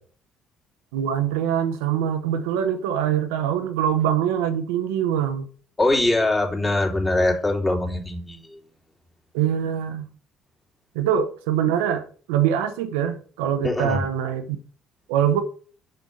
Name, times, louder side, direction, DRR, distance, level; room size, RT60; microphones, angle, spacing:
voice 1, 0.9-5.5 9.3-10.1 10.9-14.6 15.1-15.4, right 9 dB, 80° right, 0.8 m, -23 dB
voice 2, 5.8-8.4 13.6-14.0, left 2 dB, 25° left, 3.3 m, -22 dB
6.5 x 5.8 x 5.4 m
hypercardioid pair, 50°, 0 cm